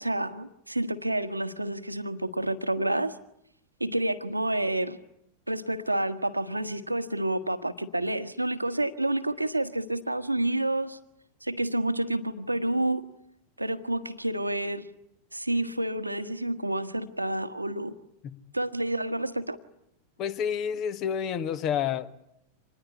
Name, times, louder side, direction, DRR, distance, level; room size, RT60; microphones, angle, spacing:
voice 1, 0.0-3.1 3.8-5.0 5.5-11.0 11.4-13.0 13.6-14.9 15.3-17.9 18.5-19.6, right 1 dB, 85° right, 9 dB, 1.3 m, -29 dB
voice 2, 20.2-22.2, left 8 dB, 35° left, 13 dB, 1.6 m, -29 dB
26.0 x 20.0 x 9.9 m, 0.78 s
figure-of-eight pair, 90°, 0 cm